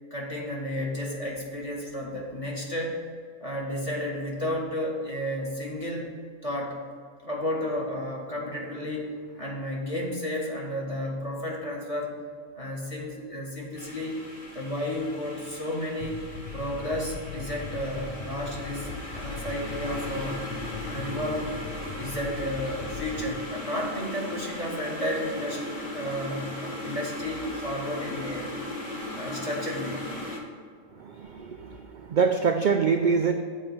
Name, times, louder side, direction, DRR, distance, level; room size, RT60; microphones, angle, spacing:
voice 1, 0.1-3.0 3.4-6.1 6.4-6.8 7.2-12.2 12.6-14.2 14.5-16.2 16.5-20.5 20.9-21.5 21.9-25.6 25.9-28.5 29.1-30.2 31.2-31.4, left 1 dB, 25° left, -3 dB, 1.5 m, -32 dB
sound 1, 13.8-30.4, left 1 dB, 45° left, 1.5 m, -37 dB
sound 2, 16.0-23.4, left 4 dB, 60° left, 0.5 m, -39 dB
voice 2, 31.0-33.3, right 5 dB, 80° right, 6 dB, 0.4 m, -25 dB
7.4 x 4.5 x 7.0 m, 2.1 s
omnidirectional pair, 1.4 m